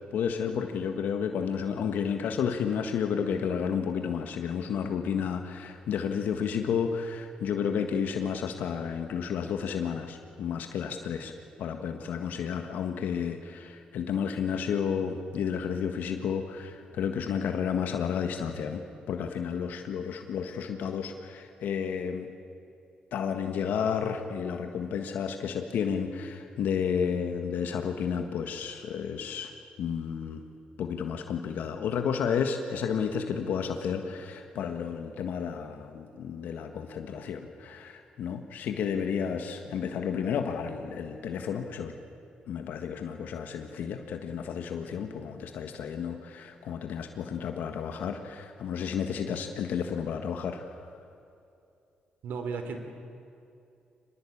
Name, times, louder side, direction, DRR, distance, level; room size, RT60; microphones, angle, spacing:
voice 1, 0.1-11.3 11.6-22.3 23.1-29.5 29.8-30.4 30.8-42.0 42.5-50.8, left 7 dB, 80° left, 5 dB, 1.6 m, -31 dB
voice 2, 52.2-52.8, right 5 dB, 80° right, 7 dB, 3.3 m, -34 dB
24.5 x 20.5 x 8.7 m, 2.6 s
cardioid pair, 85°, 3 cm